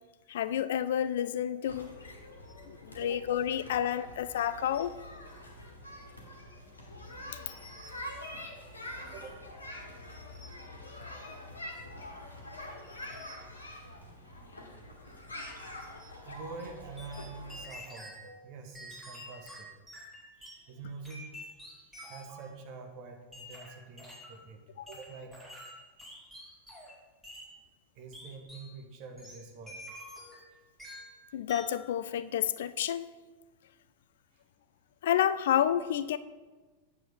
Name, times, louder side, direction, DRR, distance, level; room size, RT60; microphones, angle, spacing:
voice 1, 0.3-1.9 2.7-4.9 7.3-7.4 31.3-33.1 35.0-36.2, left 10 dB, 60° left, 15 dB, 0.3 m, -30 dB
sound 1, 1.6-17.6, left 1 dB, 75° left, 1.4 m, -45 dB
voice 2, 9.1-9.4 16.2-19.7 20.3-25.4 27.9-29.8 30.5-30.6, right 4 dB, 45° right, 3 dB, 1.3 m, -47 dB
sound 2, 17.0-18.2 18.7-20.6 21.0-22.4 23.3-24.4 24.9-27.0 27.2-27.5 28.1-28.7 29.2-30.5 30.8-31.2 31.5-31.8, equal, 5° right, 2.6 m, -48 dB
9.2 x 7.2 x 3.5 m, 1.2 s
figure-of-eight pair, 90°, 0 cm